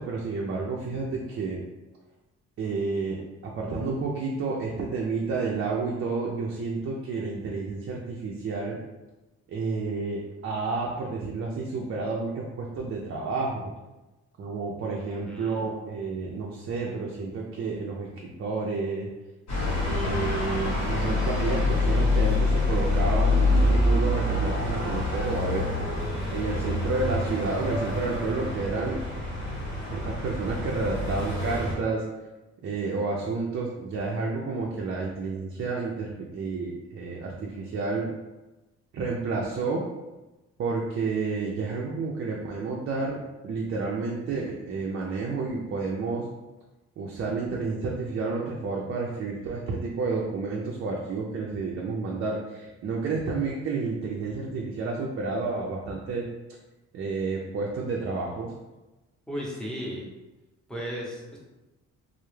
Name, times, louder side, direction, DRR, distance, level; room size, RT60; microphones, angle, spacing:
voice 1, 0.0-1.6 2.6-8.8 9.5-13.7 14.4-19.1 19.8-25.7 26.0-29.0 29.9-32.0 32.6-38.1 38.9-39.9 40.6-46.3 47.0-56.3 56.9-58.5, right 4 dB, 45° right, -2 dB, 0.4 m, -30 dB
voice 2, 15.0-15.7 59.3-60.1 60.7-61.4, equal, ahead, -4 dB, 0.6 m, -35 dB
sound 1, 19.5-31.7, left 2 dB, 65° left, 1.0 m, -26 dB
2.2 x 2.0 x 3.1 m, 1.1 s
cardioid pair, 90°, 30 cm